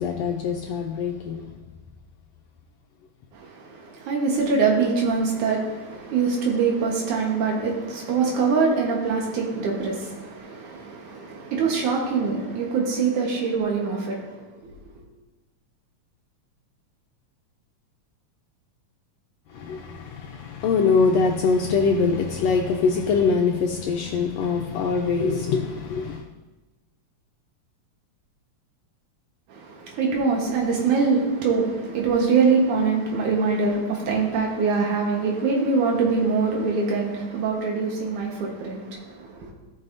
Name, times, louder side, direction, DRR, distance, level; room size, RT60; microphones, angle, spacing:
voice 1, 0.0-1.5 19.5-26.2, left 5 dB, 75° left, 1.6 m, -23 dB
voice 2, 3.3-14.7 29.5-39.5, right 4 dB, 90° right, 2.8 m, -24 dB
16.0 x 5.6 x 2.6 m
omnidirectional pair, 3.4 m